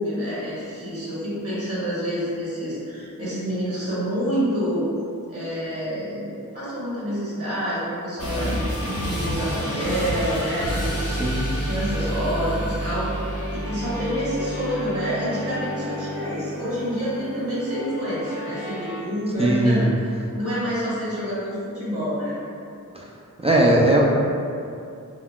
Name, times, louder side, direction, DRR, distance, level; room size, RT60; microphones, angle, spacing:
voice 1, 0.0-4.9 5.3-11.1 11.6-13.1 13.5-22.3, equal, 45° right, -10 dB, 1.3 m, -28 dB
sound 1, 8.2-19.0, equal, 45° left, 0.7 m, -29 dB
voice 2, 11.1-11.5 19.4-19.9 22.9-23.1 23.4-24.0, right 1 dB, 20° right, -4 dB, 0.3 m, -19 dB
3.7 x 2.1 x 2.2 m, 2.5 s
wide cardioid pair, 50°, 34 cm